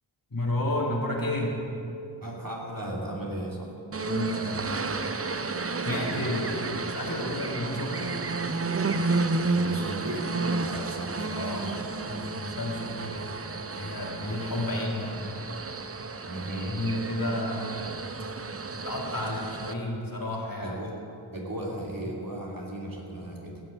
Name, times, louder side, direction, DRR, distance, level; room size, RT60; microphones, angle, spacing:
voice 1, 0.3-1.6 4.0-5.1 5.8-8.1 11.3-13.3 13.6-15.1 16.7-17.9 18.7-20.8 23.2-23.3, left 1 dB, 45° left, -2 dB, 2.7 m, -32 dB
voice 2, 2.2-3.7 5.9-6.2 9.5-11.8 16.2-16.8 20.6-21.0 21.3-23.6, right 1 dB, 45° right, -3 dB, 3.0 m, -36 dB
sound 1, 3.9-19.7, right 3 dB, 30° right, 0.7 m, -32 dB
16.0 x 6.7 x 8.8 m, 2.8 s
wide cardioid pair, 55°, 46 cm